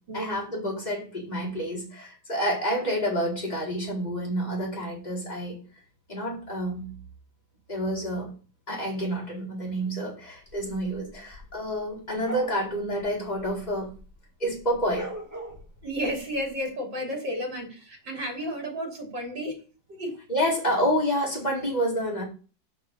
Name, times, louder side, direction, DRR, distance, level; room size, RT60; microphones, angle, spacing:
voice 1, 0.1-5.6 6.1-6.9 7.7-8.3 8.7-13.9 14.4-15.1 20.3-22.2, equal, 20° left, -3 dB, 4.8 m, -28 dB
sound 1, 10.5-14.2 14.5-16.5, right 1 dB, 10° right, 2.5 m, -41 dB
voice 2, 15.8-19.6 19.9-20.2, equal, 70° right, 1 dB, 3.9 m, -32 dB
8.6 x 6.1 x 7.1 m, 0.36 s
omnidirectional pair, 2.0 m